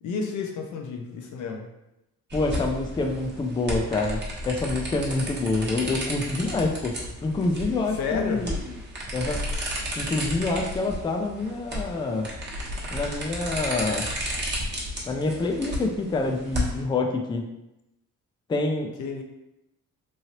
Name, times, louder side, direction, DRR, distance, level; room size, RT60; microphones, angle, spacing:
voice 1, 0.0-1.7 7.9-8.5 19.0-19.2, left 5 dB, 75° left, 3 dB, 0.6 m, -31 dB
voice 2, 2.3-8.6 9.1-9.4 10.0-12.3 12.9-14.1 15.1-17.5 18.5-18.9, left 3 dB, 15° left, 3 dB, 0.4 m, -27 dB
sound 1, 2.3-16.8, equal, 35° right, 1.0 m, -33 dB
3.1 x 2.7 x 2.8 m, 0.90 s
cardioid pair, 90°, 30 cm